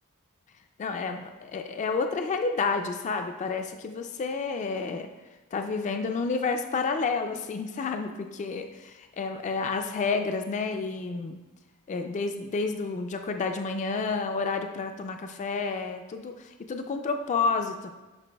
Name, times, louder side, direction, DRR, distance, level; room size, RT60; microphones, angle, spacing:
voice 1, 0.8-5.1 5.5-11.4 11.9-17.9, left 4 dB, 35° left, 6 dB, 0.3 m, -30 dB
9.9 x 5.4 x 2.2 m, 1.2 s
head